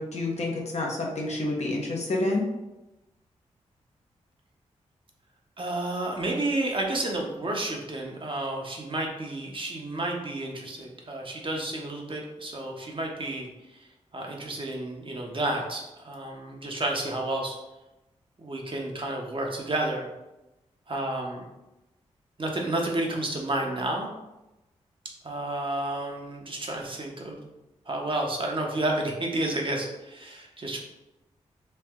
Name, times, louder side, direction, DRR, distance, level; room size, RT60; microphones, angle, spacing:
voice 1, 0.0-2.4, left 2 dB, 55° left, -1 dB, 1.0 m, -28 dB
voice 2, 5.6-13.5 14.1-17.5 18.4-20.1 20.9-21.4 22.4-24.1 25.2-27.5 27.9-30.8, right 2 dB, 40° right, 0 dB, 0.9 m, -31 dB
3.2 x 2.7 x 3.5 m, 0.98 s
supercardioid pair, 40°, 13 cm